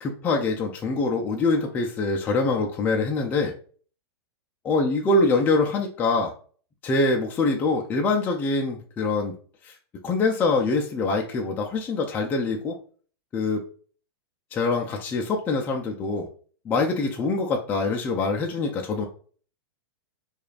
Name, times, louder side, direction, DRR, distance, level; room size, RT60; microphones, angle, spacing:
voice 1, 0.0-3.5 4.7-6.3 6.8-9.3 9.6-9.7 10.0-12.8 13.3-13.6 14.5-16.3 16.7-19.1, left 3 dB, 15° left, 1 dB, 0.3 m, -24 dB
4.8 x 2.4 x 2.3 m, 0.43 s
hypercardioid pair, 150°, 14 cm